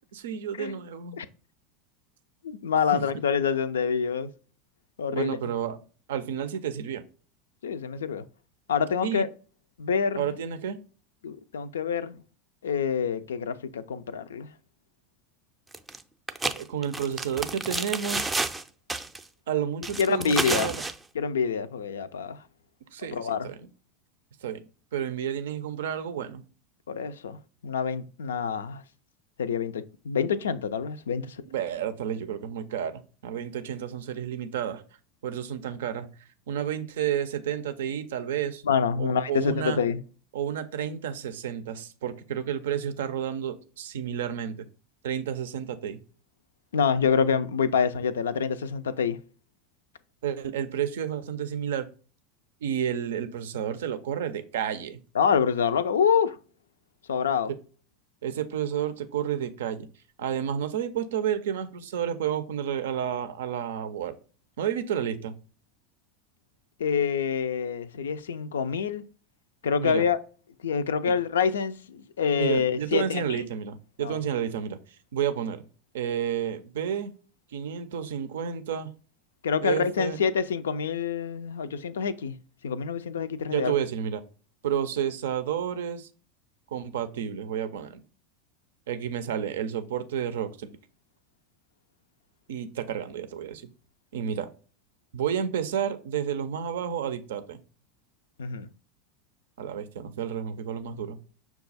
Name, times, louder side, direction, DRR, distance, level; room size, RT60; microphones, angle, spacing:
voice 1, 0.1-1.2 2.9-3.0 5.1-5.8 6.1-7.0 9.0-9.3 10.2-10.8 16.4-18.3 19.5-20.8 22.9-23.5 24.4-24.6 24.9-26.4 31.5-34.8 35.2-36.1 36.5-38.6 39.0-39.8 40.3-44.7 45.0-46.0 50.2-51.9 52.6-55.0 57.5-57.6 58.2-59.9 60.2-64.1 64.6-65.3 69.8-70.1 72.4-74.8 75.1-75.6 75.9-77.1 77.5-78.9 79.6-80.2 83.5-84.2 84.6-86.1 86.7-88.0 88.9-90.7 92.5-93.7 94.1-94.5 95.1-97.6 99.6-101.2, right 9 dB, 75° right, 0.4 m, -31 dB
voice 2, 2.4-4.3 5.0-5.4 7.6-8.2 8.7-9.3 9.8-10.4 11.2-12.2 12.6-14.5 20.0-20.7 21.1-22.4 23.1-23.5 26.9-28.8 29.4-31.4 38.6-40.0 46.7-49.2 55.1-56.4 57.1-57.5 66.8-69.0 69.6-70.2 70.6-73.4 74.0-74.2 79.4-82.4 82.6-83.7 98.4-98.7, left 6 dB, 85° left, 0.3 m, -26 dB
sound 1, 15.7-16.0 16.3-18.6 18.9-19.2 19.8-20.9, right 2 dB, 10° right, 0.4 m, -30 dB
5.9 x 2.3 x 3.9 m
hypercardioid pair, 90°, 0 cm